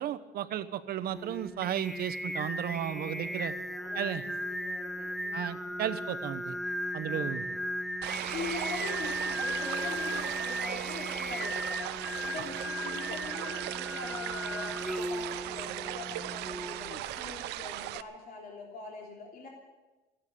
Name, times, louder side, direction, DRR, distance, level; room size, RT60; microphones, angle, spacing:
voice 1, 0.0-3.5 3.9-4.2 5.3-6.6 6.9-7.4, right 11 dB, 65° right, 12 dB, 1.0 m, -34 dB
Singing, 1.1-17.4, equal, ahead, 0.5 m, -36 dB
voice 2, 2.8-3.3 3.7-5.7 7.0-7.6 8.3-19.5, left 4 dB, 60° left, -1 dB, 3.3 m, -43 dB
sound 1, 8.0-18.0, right 15 dB, 85° right, 0.6 m, -37 dB
14.5 x 11.0 x 8.4 m, 1.2 s
cardioid pair, 110°, 17 cm